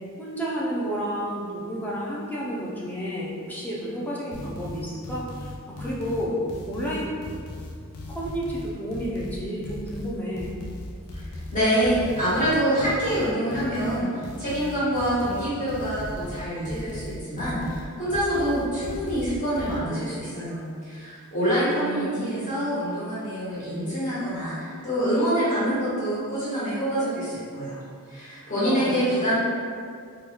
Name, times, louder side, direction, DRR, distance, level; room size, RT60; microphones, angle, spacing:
voice 1, 0.2-6.4 6.7-7.2 8.0-10.5 21.7-22.5 28.6-29.0, equal, 10° left, -6 dB, 0.4 m, -31 dB
sound 1, 4.3-19.8, left 1 dB, 80° left, 0.4 m, -37 dB
voice 2, 11.5-27.8 28.1-29.4, equal, 35° left, -12 dB, 1.4 m, -26 dB
3.0 x 2.2 x 3.4 m, 2.2 s
head